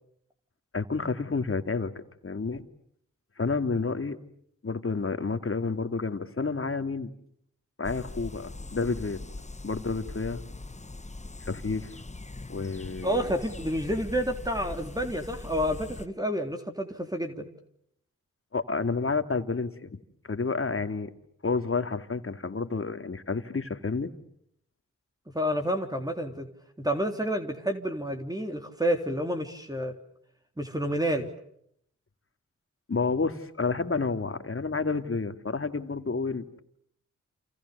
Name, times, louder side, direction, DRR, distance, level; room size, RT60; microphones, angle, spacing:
voice 1, 0.7-1.9 2.2-2.6 3.4-4.2 4.6-7.1 7.8-9.2 9.6-10.4 11.5-11.9 12.5-13.3 18.5-20.0 20.2-21.1 21.4-24.1 32.9-36.6, left 4 dB, 45° left, 9 dB, 2.7 m, -30 dB
sound 1, 7.8-16.1, left 2 dB, 20° left, 1.4 m, -41 dB
voice 2, 13.0-17.5 25.3-26.5 26.8-29.9 30.6-31.3, equal, 10° right, 4 dB, 3.7 m, -29 dB
29.0 x 27.5 x 7.0 m, 0.71 s
supercardioid pair, 40°, 31 cm